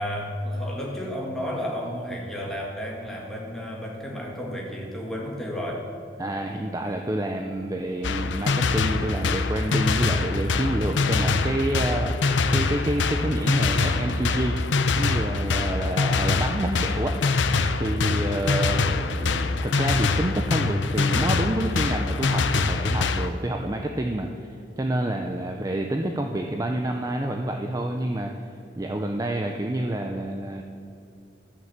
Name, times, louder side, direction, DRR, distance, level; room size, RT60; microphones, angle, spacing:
voice 1, 0.0-5.9, equal, ahead, -3 dB, 1.9 m, -32 dB
voice 2, 6.2-14.6 15.0-17.2 17.8-28.3 28.8-30.6, right 1 dB, 20° right, 3 dB, 0.5 m, -28 dB
sound 1, 8.0-23.3, left 3 dB, 90° left, 0.7 m, -24 dB
13.0 x 6.4 x 7.3 m, 2.5 s
head